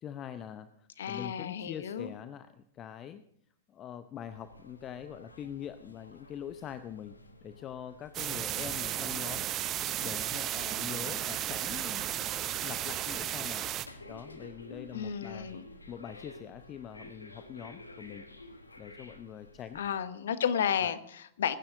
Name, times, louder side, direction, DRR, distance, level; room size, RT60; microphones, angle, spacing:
voice 1, 0.0-3.2 3.7-7.1 7.4-9.5 10.0-13.7 14.1-15.6 15.9-18.2 18.8-19.9 20.8-20.9, left 9 dB, 25° left, 11 dB, 0.7 m, -44 dB
voice 2, 1.0-2.1 14.9-15.6 19.7-21.6, left 8 dB, 60° left, 13 dB, 1.0 m, -32 dB
sound 1, 4.2-20.0, left 2 dB, 80° left, 1.5 m, -52 dB
sound 2, 8.1-13.9, right 12 dB, 30° right, 0.8 m, -34 dB
21.5 x 10.5 x 3.8 m, 0.68 s
figure-of-eight pair, 100°, 0 cm